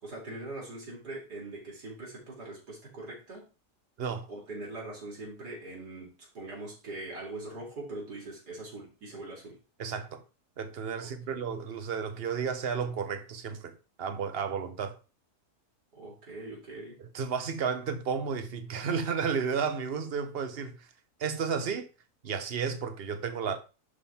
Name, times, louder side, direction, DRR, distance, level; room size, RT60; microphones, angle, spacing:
voice 1, 0.0-3.4 4.3-9.6 11.0-11.4 15.9-17.0, right 2 dB, 85° right, 4.2 m, -42 dB
voice 2, 9.8-10.2 10.6-15.0 17.0-20.9 21.2-21.9 22.2-23.6, right 6 dB, 45° right, 1.1 m, -32 dB
11.5 x 3.9 x 4.3 m
omnidirectional pair, 1.7 m